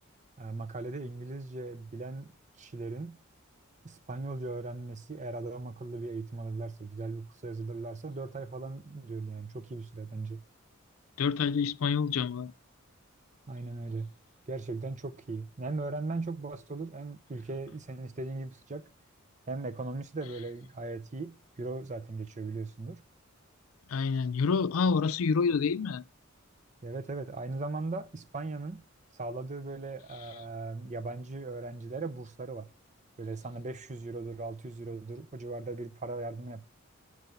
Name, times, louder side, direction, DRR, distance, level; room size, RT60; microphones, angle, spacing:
voice 1, 0.4-2.3 2.6-3.2 3.8-10.4 13.5-14.1 14.5-18.8 19.5-23.0 26.8-28.8 29.1-32.7 33.2-36.6, right 3 dB, 35° right, 0.7 m, -38 dB
voice 2, 11.2-12.5 23.9-26.0, left 5 dB, 85° left, 0.4 m, -27 dB
7.8 x 4.8 x 6.9 m
head